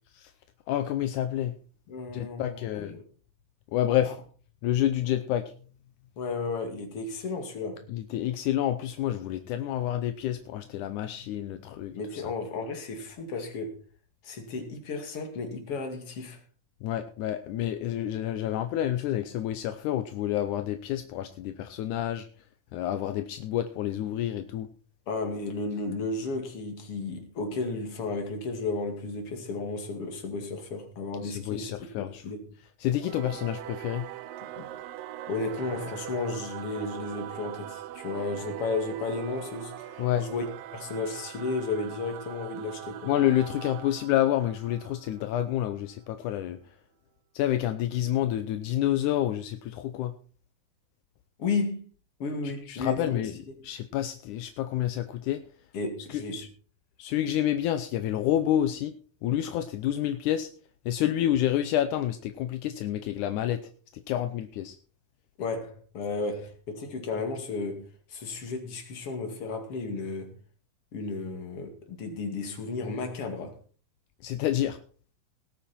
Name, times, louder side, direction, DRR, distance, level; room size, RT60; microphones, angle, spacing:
voice 1, 0.7-1.5 2.1-2.9 3.7-4.2 4.6-5.5 7.9-12.2 16.8-22.3 22.7-24.7 31.2-32.2 32.8-34.1 40.0-40.3 43.1-46.6 47.3-50.1 52.7-53.3 53.6-55.4 56.1-56.5 57.0-58.9 59.2-60.5 60.9-63.6 63.9-64.8 74.2-74.8, left 12 dB, 75° left, 2.0 m, -28 dB
voice 2, 1.9-3.0 4.1-4.2 6.2-7.8 11.9-13.8 14.2-16.4 25.1-32.5 34.6-34.7 35.3-40.4 40.7-43.1 51.4-51.8 52.2-53.2 55.7-56.4 65.4-70.3 70.9-73.6, left 3 dB, 45° left, 2.9 m, -33 dB
Singing / Musical instrument, 33.0-45.9, right 13 dB, 80° right, 2.4 m, -42 dB
18.5 x 8.8 x 4.3 m
omnidirectional pair, 4.2 m